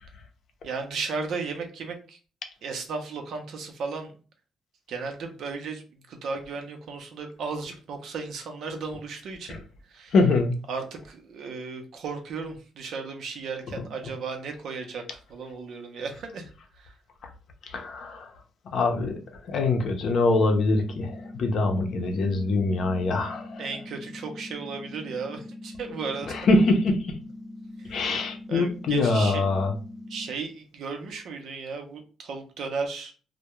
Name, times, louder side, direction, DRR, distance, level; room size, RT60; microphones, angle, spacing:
voice 1, 0.6-2.2 2.6-4.1 4.9-9.6 9.9-10.1 10.7-16.9 23.6-26.4 27.8-28.1 28.5-29.4 30.1-33.1, right 4 dB, 70° right, 4 dB, 0.6 m, -35 dB
voice 2, 10.1-10.5 17.7-18.3 18.7-19.2 19.5-23.6 26.3-27.2 27.9-29.7, left 2 dB, 65° left, 4 dB, 0.6 m, -24 dB
sound 1, 20.3-30.3, left 2 dB, 30° right, 0.8 m, -42 dB
2.2 x 2.1 x 2.9 m, 0.37 s
cardioid pair, 90°, 0 cm